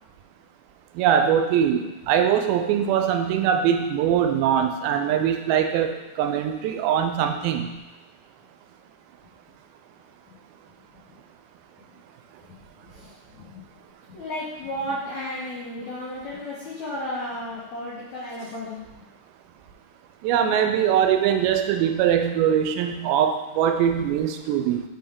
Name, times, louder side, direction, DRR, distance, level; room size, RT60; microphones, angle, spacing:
voice 1, 1.0-7.8 20.2-24.8, right 9 dB, 85° right, 6 dB, 2.4 m, -22 dB
voice 2, 12.9-13.6 14.1-18.8, left 1 dB, 75° left, -7 dB, 1.6 m, -33 dB
5.4 x 5.2 x 3.5 m, 1.0 s
omnidirectional pair, 4.3 m